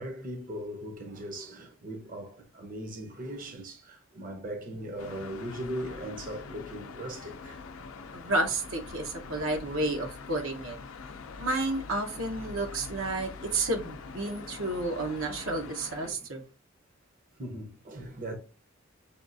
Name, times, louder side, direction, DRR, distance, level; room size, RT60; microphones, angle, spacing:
voice 1, 0.0-7.9 16.0-16.2 17.4-18.4, right 1 dB, 40° right, 0.7 m, -39 dB
sound 1, 5.0-16.1, left 4 dB, 85° left, 0.5 m, -44 dB
voice 2, 8.1-10.8 11.4-16.4, right 2 dB, 75° right, 0.9 m, -31 dB
6.8 x 2.4 x 2.6 m
head